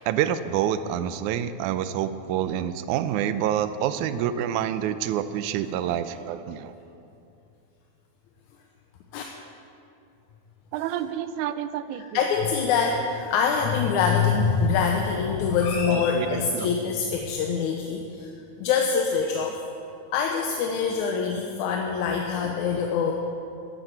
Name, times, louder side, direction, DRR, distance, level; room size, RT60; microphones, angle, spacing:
voice 1, 0.1-6.7 10.7-12.2 15.9-16.7, right 10 dB, 80° right, 12 dB, 2.0 m, -27 dB
voice 2, 12.1-18.3 18.6-19.6 20.1-23.1, left 6 dB, 80° left, 2 dB, 2.1 m, -24 dB
14.0 x 12.0 x 4.6 m, 2.7 s
omnidirectional pair, 3.5 m